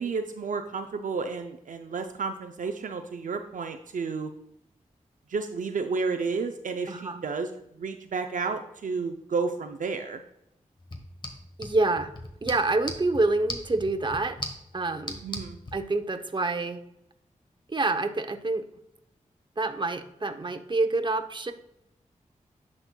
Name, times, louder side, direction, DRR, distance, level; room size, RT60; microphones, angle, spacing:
voice 1, 0.0-4.3 5.3-7.5 7.8-10.2 15.2-15.6, right 4 dB, 75° right, 6 dB, 0.5 m, -31 dB
voice 2, 6.9-7.2 11.6-12.1 12.4-14.4 14.7-15.2 15.7-16.8 17.7-18.7 19.6-21.5, right 2 dB, 35° right, 7 dB, 0.8 m, -27 dB
sound 1, 10.8-15.8, left 1 dB, 35° left, 1.3 m, -40 dB
11.0 x 4.3 x 2.3 m, 0.78 s
cardioid pair, 40°, 14 cm